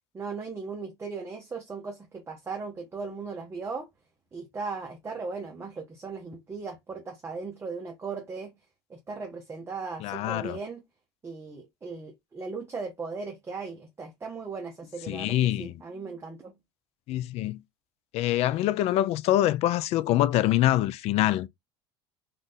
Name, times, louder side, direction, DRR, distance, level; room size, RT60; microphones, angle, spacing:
voice 1, 0.1-3.9 4.3-8.5 8.9-10.8 11.2-16.5, right 4 dB, 20° right, 0.7 m, -37 dB
voice 2, 10.0-10.6 15.1-15.8 17.1-17.6 18.1-21.5, left 14 dB, 50° left, 0.4 m, -25 dB
2.5 x 2.5 x 3.7 m
hypercardioid pair, 90°, 13 cm